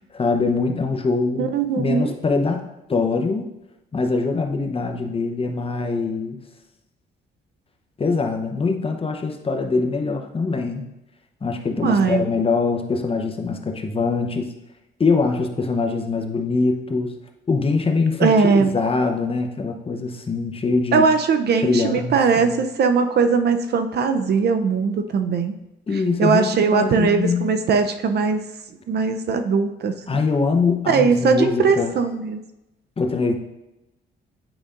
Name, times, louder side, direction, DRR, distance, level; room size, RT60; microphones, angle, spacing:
voice 1, 0.0-3.5 3.9-6.4 8.0-10.8 11.4-14.5 15.0-17.2 17.5-21.1 21.6-22.6 25.9-27.5 30.1-32.0 33.0-33.3, left 4 dB, 30° left, 4 dB, 0.8 m, -23 dB
voice 2, 1.4-2.2 11.8-12.3 18.2-18.8 20.9-25.6 26.2-28.4 28.9-30.0 30.9-32.4, right 5 dB, 55° right, 8 dB, 0.6 m, -20 dB
8.9 x 5.0 x 2.5 m, 0.94 s
cardioid pair, 90°, 20 cm